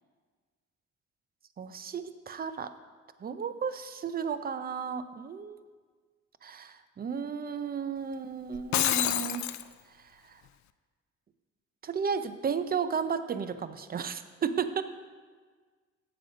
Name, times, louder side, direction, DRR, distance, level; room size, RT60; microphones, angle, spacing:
voice 1, 1.6-2.7 3.2-5.6 6.4-9.5 9.9-10.4 11.8-14.8, right 6 dB, 30° right, 12 dB, 0.5 m, -34 dB
Shatter, 8.5-9.6, left 13 dB, 65° left, 0.4 m, -27 dB
7.6 x 6.9 x 5.1 m, 1.5 s
cardioid pair, 90°, 30 cm